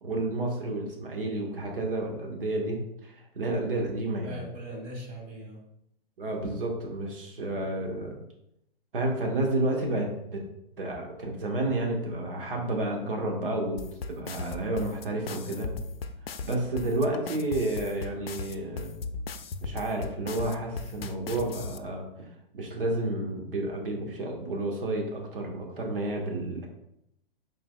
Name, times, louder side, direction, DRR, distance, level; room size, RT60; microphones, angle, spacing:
voice 1, 0.0-4.4 6.2-8.1 8.9-10.4 10.8-13.8 14.1-15.7 16.4-18.9 19.6-22.3 22.5-26.7, right 2 dB, 65° right, 1 dB, 1.3 m, -30 dB
voice 2, 4.2-5.6, right 1 dB, 30° right, -1 dB, 1.6 m, -40 dB
sound 1, 13.8-21.8, left 4 dB, 80° left, 0.5 m, -37 dB
6.0 x 3.9 x 2.2 m, 0.81 s
figure-of-eight pair, 115°, 29 cm